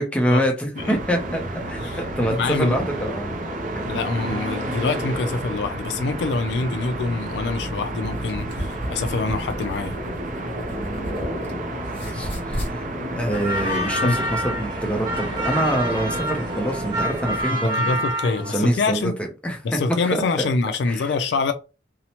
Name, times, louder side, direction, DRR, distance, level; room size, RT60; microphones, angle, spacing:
voice 1, 0.0-3.3 10.7-11.3 11.7-12.9 13.2-18.0 18.5-19.8 20.1-20.5 20.9-21.1, right 1 dB, 5° left, 0.5 m, -26 dB
sound 1, 0.8-17.4, right 1 dB, 45° right, 0.4 m, -30 dB
voice 2, 1.8-2.8 3.9-10.0 12.1-12.3 14.0-14.2 17.5-19.1 19.6-21.5, left 3 dB, 65° left, 0.3 m, -25 dB
sound 2, 8.1-11.5 11.8-12.7, equal, 30° left, 1.0 m, -33 dB
sound 3, 13.3-18.7, equal, 25° right, 0.9 m, -27 dB
2.8 x 2.0 x 2.8 m
head